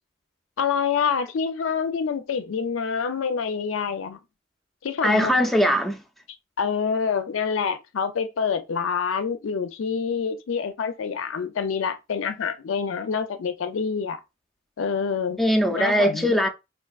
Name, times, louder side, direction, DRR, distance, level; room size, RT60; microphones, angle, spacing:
voice 1, 0.6-4.2 4.8-5.3 6.6-14.2 14.8-15.4 15.7-16.3, left 6 dB, 85° left, 0.4 m, -26 dB
voice 2, 5.0-6.0 15.4-16.5, equal, ahead, 0.4 m, -20 dB
4.4 x 2.6 x 2.3 m
head